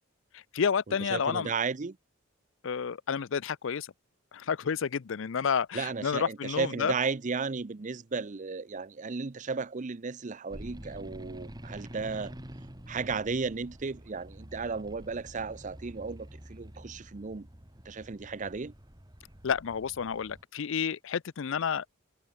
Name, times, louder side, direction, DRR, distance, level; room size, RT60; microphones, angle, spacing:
voice 1, 0.3-1.5 2.6-3.9 4.3-6.9 19.4-21.9, left 6 dB, 65° left, 0.5 m, -30 dB
voice 2, 1.1-2.0 5.7-12.3 12.9-17.5 17.9-18.7, right 4 dB, 35° right, 0.6 m, -34 dB
sound 1, 10.5-20.4, equal, 20° right, 2.3 m, -47 dB
head